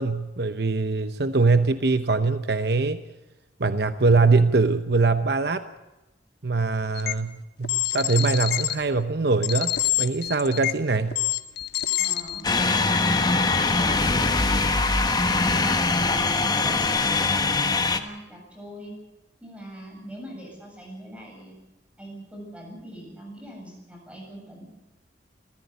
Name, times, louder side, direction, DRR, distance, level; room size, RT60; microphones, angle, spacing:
voice 1, 0.0-3.0 3.6-5.7 6.4-9.7 10.0-11.2, right 3 dB, 65° right, 10 dB, 0.9 m, -22 dB
sound 1, 7.0-7.1 7.6-8.7 9.4-10.8 11.1-12.5, left 14 dB, 65° left, 1.4 m, -26 dB
voice 2, 12.0-12.5 12.8-15.0 15.4-18.9 19.4-21.6 22.0-24.7, right 1 dB, 5° right, 0 dB, 7.8 m, -42 dB
sound 2, 12.4-18.0, left 3 dB, 25° left, 1.2 m, -22 dB
26.0 x 15.0 x 8.2 m, 1.0 s
head